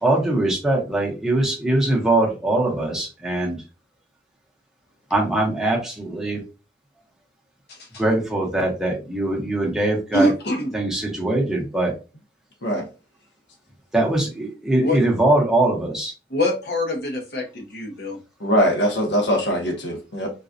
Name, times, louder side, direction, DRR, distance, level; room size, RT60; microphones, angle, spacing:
voice 1, 0.0-3.6 5.1-6.4 8.0-10.3 10.7-11.9 13.9-16.1, right 2 dB, 5° right, 0.8 m, -22 dB
voice 2, 10.1-10.7 14.8-15.0 16.3-18.2, left 1 dB, 65° left, 0.9 m, -24 dB
voice 3, 18.4-20.3, equal, 90° left, 1.0 m, -21 dB
4.0 x 2.3 x 2.5 m
head